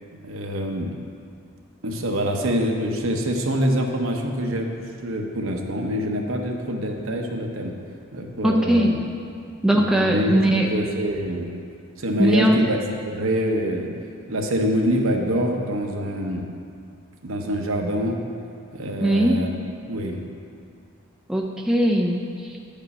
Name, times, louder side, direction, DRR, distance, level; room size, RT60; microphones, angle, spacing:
voice 1, 0.2-0.9 1.8-7.7 8.1-9.0 9.7-10.4 10.7-11.5 12.0-12.8 13.0-13.9 14.3-16.5 17.2-18.2 18.7-19.5 19.9-20.2, equal, 70° right, 2 dB, 0.9 m, -25 dB
voice 2, 8.4-8.9 9.6-10.7 12.2-12.6 19.0-19.4 21.3-22.6, right 1 dB, 5° right, -1 dB, 0.4 m, -20 dB
9.2 x 5.3 x 5.4 m, 2.3 s
head